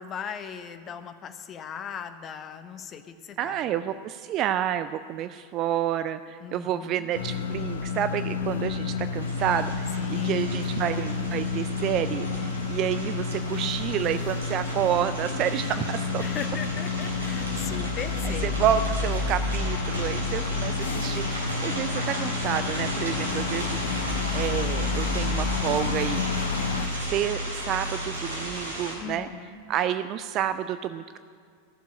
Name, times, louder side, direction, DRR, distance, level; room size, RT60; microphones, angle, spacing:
voice 1, 0.0-3.6 6.4-7.1 10.0-10.4 16.2-18.6 29.0-29.6, left 7 dB, 30° left, 9 dB, 0.9 m, -38 dB
voice 2, 3.4-16.2 18.2-26.4 27.1-29.3 29.7-31.2, right 10 dB, 35° right, 12 dB, 0.3 m, -29 dB
sound 1, 7.1-26.9, left 4 dB, 65° left, 0.9 m, -30 dB
sound 2, 9.2-28.9, right 1 dB, 70° right, 3.6 m, -36 dB
sound 3, 16.7-28.5, left 2 dB, 50° right, 3.7 m, -33 dB
14.0 x 7.3 x 9.6 m, 2.1 s
figure-of-eight pair, 90°, 0 cm